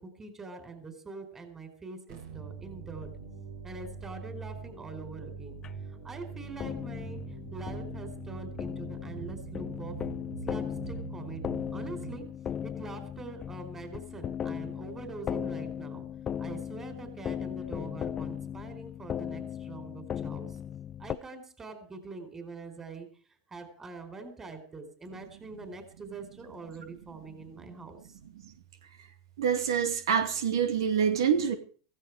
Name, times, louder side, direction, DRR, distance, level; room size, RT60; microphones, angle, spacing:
voice 1, 0.0-3.1 3.6-5.6 5.9-10.0 10.4-12.3 12.6-16.1 16.4-20.6 21.0-28.2, right 3 dB, 20° right, 8 dB, 4.6 m, -44 dB
sound 1, 2.1-12.2, right 6 dB, 65° right, 4.5 m, -43 dB
sound 2, 3.0-3.2 3.8-3.9 4.7-4.8 5.6-5.8 6.6-21.2, left 9 dB, 25° left, 0.7 m, -37 dB
voice 2, 29.4-31.5, right 7 dB, 85° right, 8 dB, 2.3 m, -26 dB
16.0 x 15.5 x 4.9 m, 0.41 s
supercardioid pair, 125°, 2 cm